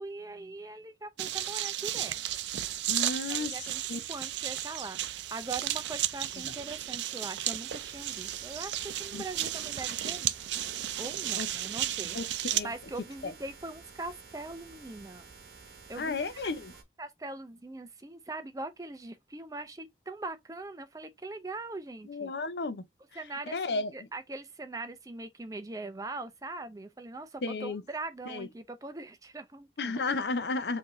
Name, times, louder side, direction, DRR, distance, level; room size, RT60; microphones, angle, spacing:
voice 1, 0.0-2.2 3.3-10.6 11.0-12.2 12.6-15.3 15.6-16.5 17.0-22.3 23.1-30.0, right 2 dB, 20° right, 0.5 m, -41 dB
sound 1, 1.2-12.6, right 12 dB, 85° right, 0.4 m, -34 dB
voice 2, 2.9-3.6 3.9-4.0 6.4-6.5 9.1-9.2 11.4-11.5 12.1-12.3 12.5-12.7 13.2-13.3 16.0-16.7 22.1-22.9 23.5-24.1 27.4-27.8 28.3-28.5 29.8-30.8, left 3 dB, 75° left, 0.6 m, -33 dB
sound 2, 7.7-16.8, right 4 dB, 60° right, 1.1 m, -52 dB
5.7 x 2.7 x 3.1 m
head